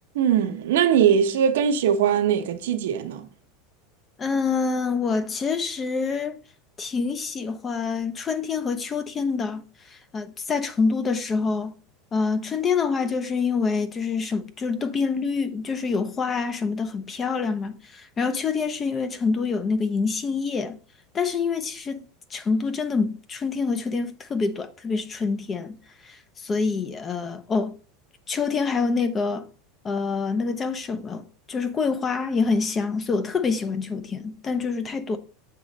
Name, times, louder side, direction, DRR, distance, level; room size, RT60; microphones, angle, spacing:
voice 1, 0.1-3.3, right 8 dB, 85° right, 1.0 m, -21 dB
voice 2, 4.2-6.4 6.8-9.6 9.9-11.7 12.1-20.8 21.1-22.0 22.3-27.7 28.3-29.5 29.8-31.2 31.5-35.2, left 4 dB, 25° left, 0.8 m, -26 dB
7.5 x 3.2 x 5.2 m
supercardioid pair, 125°, 0 cm